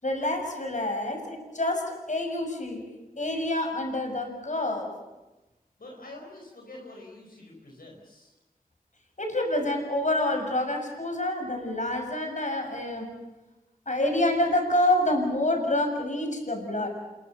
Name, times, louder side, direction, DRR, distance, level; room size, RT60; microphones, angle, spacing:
voice 1, 0.0-2.8 3.2-5.0 9.2-13.1 13.8-16.9, left 1 dB, 55° left, 4 dB, 6.9 m, -27 dB
voice 2, 5.8-8.3, left 2 dB, 80° left, 0 dB, 4.8 m, -46 dB
27.0 x 23.0 x 7.0 m, 1.1 s
wide cardioid pair, 40°, 15 cm